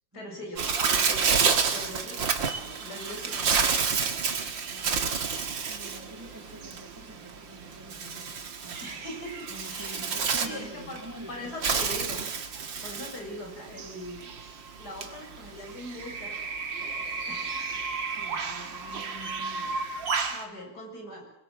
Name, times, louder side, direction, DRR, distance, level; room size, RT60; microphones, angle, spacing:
voice 1, 0.1-3.8 8.8-10.0 10.4-11.0 11.3-12.3 12.8-14.3 14.8-16.6 17.2-17.6 18.2-18.5 20.3-21.3, left 1 dB, 55° left, 2 dB, 7.7 m, -41 dB
Bird, 0.6-20.4, right 5 dB, 80° right, 2.6 m, -30 dB
voice 2, 4.7-5.2 5.7-8.4 8.6-8.9 9.5-11.5 18.1-19.9, equal, 10° right, 4 dB, 2.6 m, -46 dB
25.5 x 22.5 x 7.7 m, 0.76 s
omnidirectional pair, 2.0 m